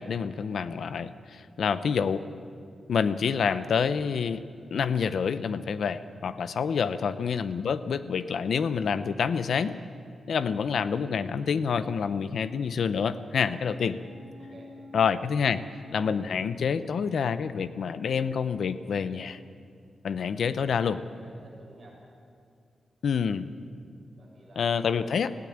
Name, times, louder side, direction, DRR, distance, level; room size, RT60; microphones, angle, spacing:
voice 1, 0.0-2.2 2.9-4.4 4.7-9.8 10.3-14.0 14.9-15.6 15.9-19.4 20.0-21.0 23.0-23.5 24.6-25.3, left 6 dB, 65° left, 13 dB, 0.7 m, -27 dB
voice 2, 6.4-6.8 14.4-14.7 21.1-22.0 24.1-25.1, right 2 dB, 25° right, -5 dB, 7.1 m, -52 dB
sound 1, 13.5-17.2 17.6-17.7, left 3 dB, 40° left, 6.7 m, -50 dB
19.0 x 16.0 x 8.8 m, 2.4 s
wide cardioid pair, 165°, 0 cm